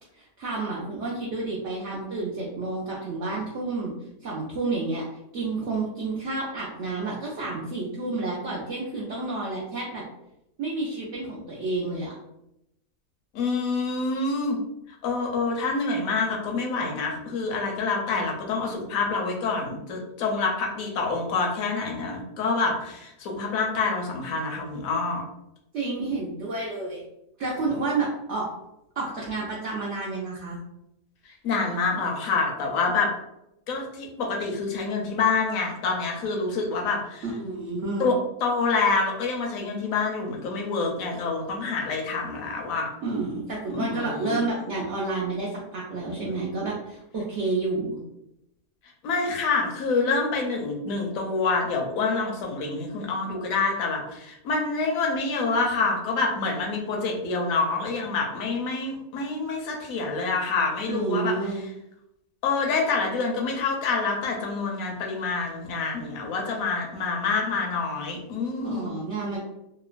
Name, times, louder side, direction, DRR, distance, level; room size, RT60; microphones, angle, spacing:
voice 1, 0.1-3.9 4.2-5.0 5.3-10.0 10.6-12.1 25.7-27.0 27.4-28.5 29.0-30.6 37.2-38.1 43.0-48.0 60.9-61.6 68.6-69.4, right 3 dB, 65° right, -5 dB, 0.7 m, -30 dB
voice 2, 13.3-14.6 15.0-25.2 31.4-33.1 33.7-37.2 38.0-38.2 38.4-42.9 43.7-44.4 49.0-61.3 62.4-68.9, left 4 dB, 70° left, 1 dB, 1.0 m, -27 dB
3.0 x 2.0 x 2.4 m, 0.83 s
omnidirectional pair, 1.6 m